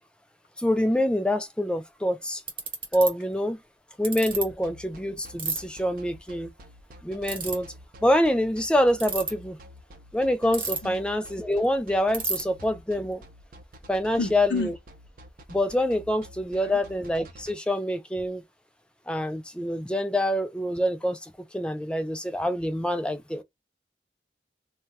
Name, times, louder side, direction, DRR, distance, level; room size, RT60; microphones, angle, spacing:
voice 1, 0.6-2.4 2.9-3.6 4.0-6.5 7.0-7.7 8.0-9.6 10.1-13.2 13.9-14.7 15.5-18.4 19.1-23.4, equal, 5° left, 0.4 m, -26 dB
Ratchet pawl, 1.8-1.9 2.5-3.1 4.0-4.4 5.4-5.6 7.2-7.5 8.9-9.3 10.5-11.0 11.3-11.4 11.6-11.7 12.1-12.4, right 4 dB, 30° right, 1.1 m, -29 dB
sound 1, 4.3-17.5, equal, 55° right, 0.6 m, -48 dB
voice 2, 14.2-14.7 16.6-16.8, left 3 dB, 75° left, 0.7 m, -30 dB
2.3 x 2.3 x 3.9 m
head